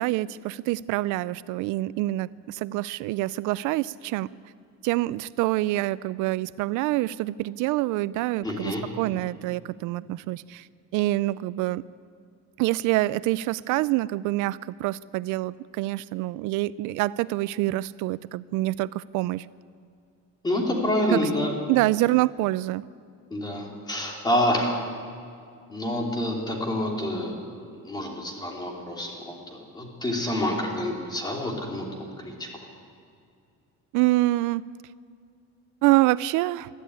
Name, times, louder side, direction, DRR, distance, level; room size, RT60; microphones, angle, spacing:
voice 1, 0.0-4.3 4.8-10.7 10.9-11.8 12.6-19.5 21.1-21.3 21.7-22.8 33.9-34.6 35.8-36.7, right 18 dB, 75° right, 18 dB, 0.5 m, -26 dB
voice 2, 8.4-8.8 20.4-21.5 23.3-24.7 25.7-27.4 27.7-32.5, left 1 dB, 15° left, 1 dB, 2.9 m, -28 dB
20.5 x 13.0 x 9.6 m, 2.4 s
cardioid pair, 180°, 31 cm